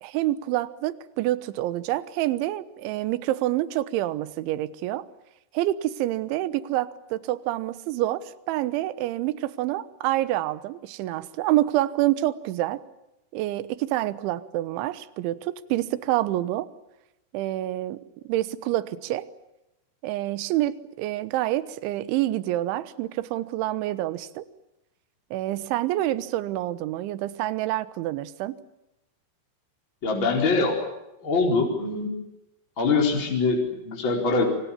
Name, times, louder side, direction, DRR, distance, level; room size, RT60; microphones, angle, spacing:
voice 1, 0.0-5.1 5.5-12.8 13.3-16.7 17.3-18.0 18.2-19.3 20.0-24.4 25.3-28.6, right 15 dB, 75° right, 14 dB, 3.3 m, -27 dB
voice 2, 30.0-30.8 31.2-32.1 32.8-34.4, left 3 dB, 25° left, 0 dB, 4.6 m, -23 dB
29.0 x 25.0 x 7.2 m, 0.91 s
omnidirectional pair, 5.9 m